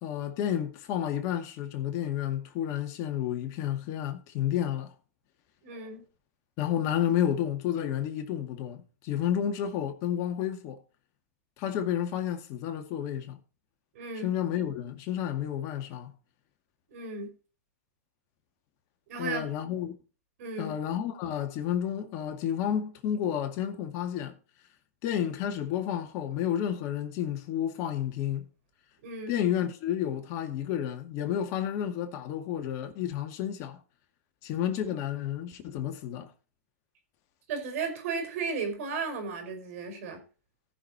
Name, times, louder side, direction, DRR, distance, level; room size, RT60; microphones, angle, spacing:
voice 1, 0.0-4.9 6.6-10.8 11.6-13.4 14.2-16.1 19.2-19.9 20.6-24.3 25.0-28.5 29.3-33.8 34.4-36.3, left 10 dB, 40° left, 2.2 m, -31 dB
voice 2, 5.6-6.0 14.0-14.3 16.9-17.3 19.1-19.5 20.4-20.8 29.0-29.4 37.5-40.2, right 4 dB, 60° right, 5.2 m, -34 dB
18.5 x 6.5 x 2.9 m
hypercardioid pair, 130°, 9 cm